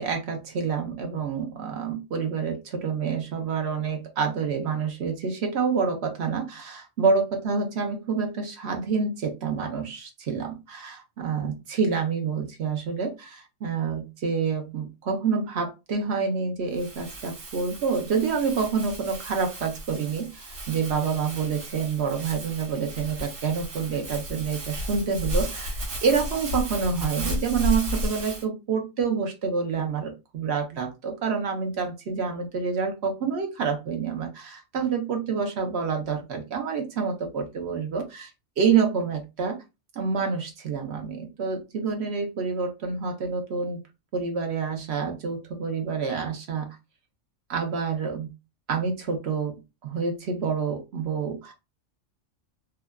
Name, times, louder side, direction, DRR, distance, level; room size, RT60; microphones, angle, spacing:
voice 1, 0.0-38.3 38.6-39.6 40.0-43.8 44.1-46.7 47.5-48.3 48.7-51.5, right 5 dB, 60° right, 3 dB, 0.9 m, -28 dB
Crumpling crinkling, 16.7-28.4, equal, 80° right, 1.3 m, -34 dB
2.8 x 2.3 x 2.2 m, 0.26 s
omnidirectional pair, 1.3 m